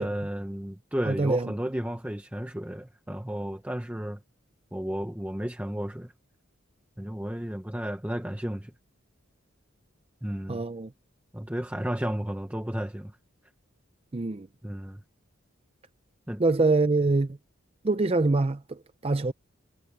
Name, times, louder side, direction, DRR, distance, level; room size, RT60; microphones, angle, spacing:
voice 1, 0.0-4.2 4.7-6.1 7.0-8.7 10.2-10.6 11.3-13.1 14.6-15.0 16.3-16.4, equal, 5° right, 0.9 m, -33 dB
voice 2, 1.1-1.5 10.5-10.9 14.1-14.5 16.4-17.3 17.8-18.8 19.0-19.3, right 3 dB, 30° right, 0.5 m, -24 dB
head